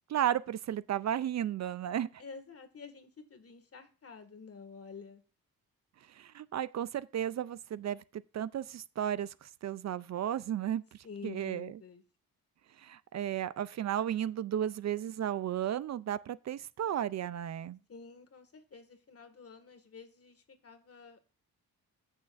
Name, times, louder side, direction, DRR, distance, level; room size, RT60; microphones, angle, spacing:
voice 1, 0.1-2.1 6.1-10.8 11.2-11.7 12.8-17.8, right 10 dB, 50° right, 0.4 m, -34 dB
voice 2, 2.2-5.2 11.0-12.0 17.9-21.3, left 5 dB, 40° left, 1.8 m, -49 dB
14.0 x 6.5 x 2.5 m
cardioid pair, 100°, 36 cm